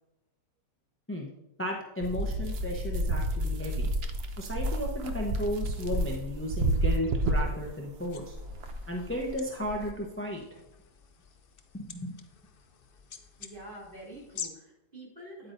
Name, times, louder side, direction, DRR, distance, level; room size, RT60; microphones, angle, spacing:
voice 1, 1.6-3.9 4.4-8.4 8.9-10.4 11.7-12.2, left 1 dB, 15° left, 0 dB, 0.4 m, -34 dB
sound 1, 2.0-9.9, right 1 dB, 65° right, 0.6 m, -30 dB
sound 2, 8.1-14.5, left 7 dB, 85° left, 0.4 m, -47 dB
voice 2, 13.4-15.5, right 1 dB, 30° right, -5 dB, 3.0 m, -46 dB
9.2 x 8.6 x 2.6 m, 0.92 s
omnidirectional pair, 1.8 m